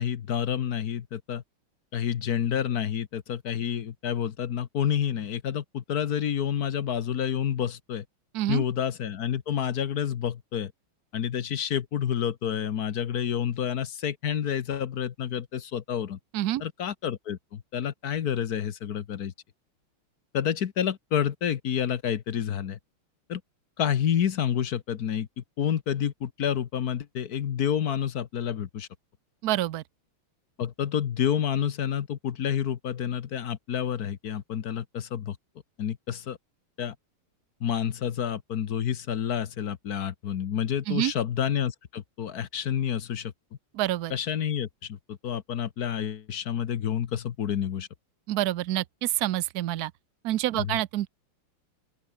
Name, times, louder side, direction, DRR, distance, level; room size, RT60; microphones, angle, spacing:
voice 1, 0.0-1.4 1.9-8.0 8.5-10.7 11.1-16.2 16.6-19.3 20.3-22.8 23.3-23.4 23.8-28.9 30.6-35.4 35.8-36.4 36.8-36.9 37.6-43.3 44.1-47.9 50.5-50.8, left 9 dB, 55° left, 1.3 m, -29 dB
voice 2, 29.4-29.8 40.9-41.1 43.7-44.1 48.3-49.9 50.2-51.1, right 14 dB, 75° right, 0.8 m, -27 dB
open air
omnidirectional pair, 2.4 m